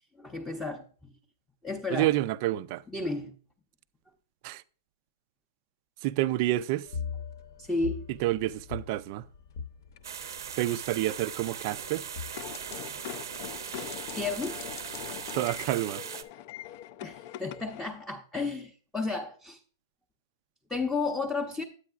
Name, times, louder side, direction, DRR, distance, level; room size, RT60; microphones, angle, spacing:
voice 1, 0.2-0.8 1.6-2.1 2.9-3.3 7.6-8.0 14.1-14.6 17.0-19.6 20.7-21.6, left 3 dB, 5° left, 0.6 m, -32 dB
voice 2, 1.9-2.8 4.4-4.6 6.0-6.8 8.2-9.2 10.6-12.0 15.3-16.0, right 15 dB, 40° right, 0.3 m, -28 dB
sound 1, 6.9-15.7, left 6 dB, 60° left, 0.8 m, -43 dB
sound 2, 10.0-16.2, right 8 dB, 85° right, 0.8 m, -39 dB
sound 3, 12.4-17.9, left 12 dB, 40° left, 0.4 m, -42 dB
9.8 x 8.3 x 2.4 m
hypercardioid pair, 150°, 2 cm